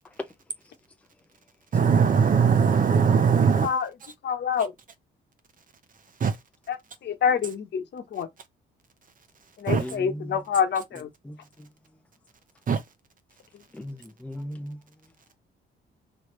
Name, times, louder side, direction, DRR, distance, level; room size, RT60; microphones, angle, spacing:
voice 1, 1.7-3.7 6.2-6.4 9.7-9.8 12.7-12.8, right 6 dB, 45° right, 0.9 m, -20 dB
voice 2, 4.2-4.7 6.7-6.8 7.0-8.3 9.6-11.1, left 7 dB, 60° left, 1.1 m, -26 dB
voice 3, 9.8-10.4 11.3-11.4 13.7-14.8, left 1 dB, 5° left, 0.6 m, -37 dB
4.8 x 3.3 x 3.2 m
cardioid pair, 90°, 20 cm